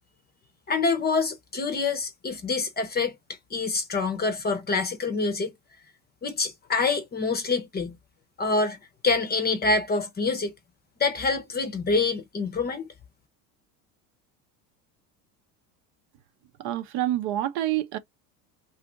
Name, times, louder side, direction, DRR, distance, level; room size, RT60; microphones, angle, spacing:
voice 1, 0.7-3.1 3.5-5.5 6.2-8.0 8.4-8.8 9.0-10.5 11.0-12.9, left 4 dB, 20° left, 0.7 m, -26 dB
voice 2, 16.6-18.0, right 13 dB, 55° right, 0.7 m, -27 dB
2.5 x 2.5 x 3.7 m
supercardioid pair, 95°, 47 cm